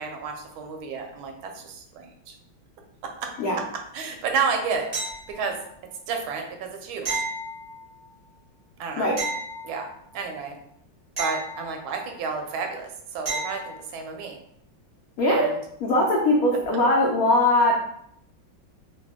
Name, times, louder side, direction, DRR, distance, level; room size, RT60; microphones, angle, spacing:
voice 1, 0.0-2.3 3.2-3.3 3.9-4.9 5.3-5.6 6.1-7.1 8.8-9.1 9.6-9.9 10.1-10.6 11.2-14.4 15.3-15.6, right 5 dB, 80° right, 4 dB, 1.4 m, -31 dB
sound 1, 4.9-5.7 7.0-8.1 9.2-10.2 11.2-12.2 13.3-13.9 16.6-16.7, right 3 dB, 30° right, 0.7 m, -33 dB
voice 2, 15.2-15.5 15.8-17.7, left 1 dB, 85° left, -3 dB, 0.7 m, -20 dB
3.3 x 2.2 x 3.6 m, 0.70 s
omnidirectional pair, 2.2 m